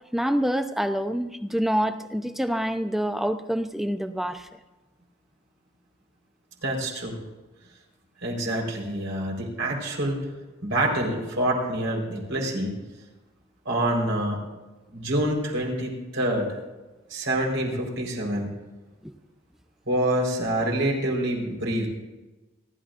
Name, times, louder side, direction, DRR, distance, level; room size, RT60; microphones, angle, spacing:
voice 1, 0.1-4.5 19.0-19.1, equal, ahead, 8 dB, 0.6 m, -26 dB
voice 2, 6.6-7.2 8.2-10.2 10.6-12.7 13.6-14.4 14.9-16.5 17.1-18.5 19.9-21.9, right 1 dB, 75° right, -1 dB, 4.5 m, -26 dB
30.0 x 12.5 x 2.6 m, 1.1 s
head